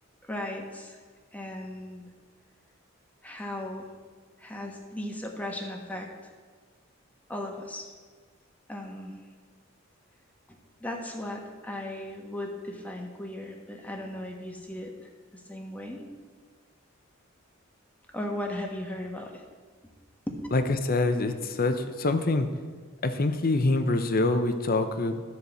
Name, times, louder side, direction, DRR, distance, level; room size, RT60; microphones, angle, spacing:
voice 1, 0.2-1.0 1.3-2.1 3.2-3.9 4.4-6.3 7.3-7.9 8.7-9.2 10.8-14.9 15.5-16.1 18.1-19.3 20.3-20.4, left 1 dB, 10° left, 1 dB, 1.3 m, -36 dB
voice 2, 20.5-22.5 23.0-25.2, left 2 dB, 45° left, 9 dB, 0.8 m, -25 dB
13.0 x 4.7 x 6.9 m, 1.5 s
head